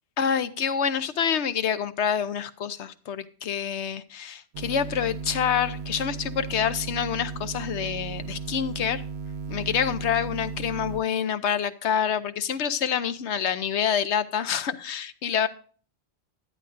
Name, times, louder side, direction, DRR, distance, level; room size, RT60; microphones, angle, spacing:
voice 1, 0.2-9.0 9.5-15.5, left 8 dB, 90° left, 12 dB, 1.1 m, -27 dB
sound 1, 4.5-11.0, right 5 dB, 75° right, 0.9 m, -35 dB
11.5 x 11.0 x 2.5 m, 0.42 s
omnidirectional pair, 1.1 m